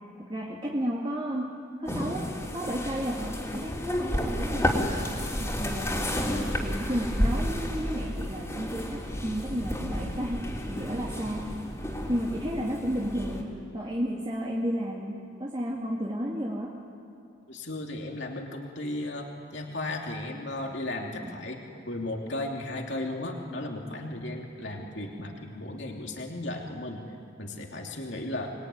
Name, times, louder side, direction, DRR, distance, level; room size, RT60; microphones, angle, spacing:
voice 1, 0.3-4.9 5.4-11.5 12.1-16.8 21.2-21.4, equal, 25° right, -3 dB, 2.6 m, -32 dB
sound 1, 1.9-13.4, equal, 15° left, 3.6 m, -31 dB
voice 2, 17.5-21.6 21.8-28.6, left 1 dB, 65° left, 1 dB, 2.9 m, -35 dB
26.5 x 22.5 x 9.7 m, 2.5 s
head